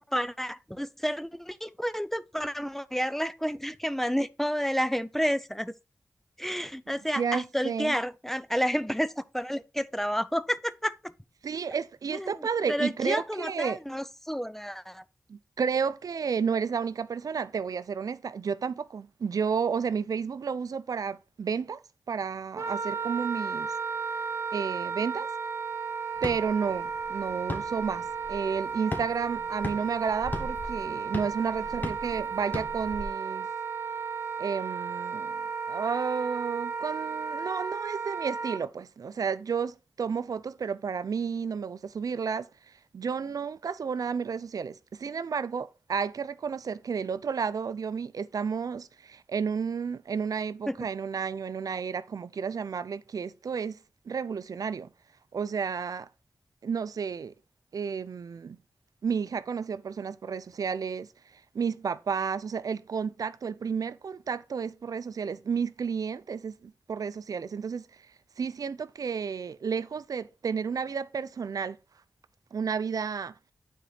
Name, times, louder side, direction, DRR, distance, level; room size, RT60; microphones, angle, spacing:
voice 1, 0.0-5.7 6.4-10.9 12.1-12.3 12.7-15.0 50.7-50.8, equal, 5° left, 0.5 m, -30 dB
voice 2, 7.1-7.9 11.4-13.8 15.3-21.8 22.1-23.7 24.5-25.3 26.2-33.5 34.4-35.4 35.7-53.8 54.1-54.9 55.3-56.1 56.6-57.3 57.7-58.6 59.0-68.1 68.4-71.8 72.5-73.3, right 6 dB, 75° right, 0.4 m, -32 dB
Wind instrument woodwind instrument, 22.5-38.6, right 6 dB, 55° right, 1.7 m, -34 dB
sound 1, 26.2-33.0, left 1 dB, 30° left, 1.5 m, -39 dB
9.1 x 4.4 x 3.9 m
cardioid pair, 50°, 6 cm